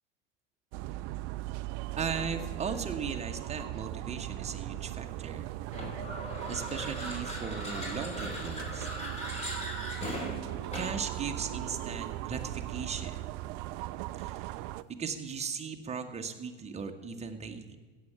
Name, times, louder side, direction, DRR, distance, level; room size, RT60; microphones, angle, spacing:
sound 1, 0.7-14.8, right 17 dB, 35° right, 0.4 m, -38 dB
voice 1, 2.0-5.5 6.5-8.9 10.7-13.2 14.2-14.4 15.0-17.8, right 5 dB, 15° right, 4 dB, 1.3 m, -37 dB
sound 2, 5.7-11.1, left 1 dB, 15° left, 3.9 m, -39 dB
16.5 x 7.6 x 5.9 m, 1.4 s
hypercardioid pair, 90°, 37 cm